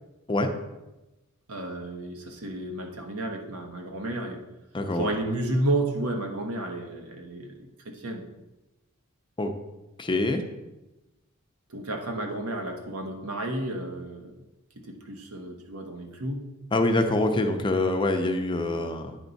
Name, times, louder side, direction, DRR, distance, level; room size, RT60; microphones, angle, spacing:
voice 1, 1.5-4.4 4.9-7.7 7.9-8.2 11.7-14.3 14.8-16.4, right 1 dB, 90° right, 2 dB, 1.1 m, -31 dB
voice 2, 4.7-5.1 9.4-9.5 10.0-10.4 16.7-19.2, left 2 dB, 25° left, 5 dB, 0.6 m, -25 dB
9.2 x 4.6 x 4.0 m, 1.0 s
head